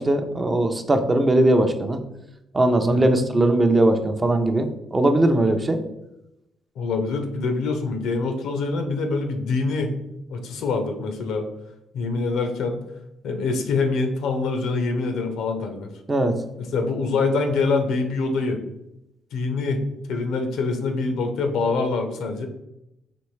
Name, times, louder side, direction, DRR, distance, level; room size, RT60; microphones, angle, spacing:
voice 1, 0.0-2.0 2.5-5.8 16.1-16.3, right 1 dB, 25° right, 6 dB, 0.5 m, -20 dB
voice 2, 2.9-3.2 6.8-9.9 10.3-11.5 11.9-12.8 13.2-15.9 16.6-18.6 19.3-22.5, left 3 dB, 85° left, 5 dB, 0.6 m, -25 dB
4.3 x 3.1 x 3.1 m, 0.88 s
cardioid pair, 90°, 0 cm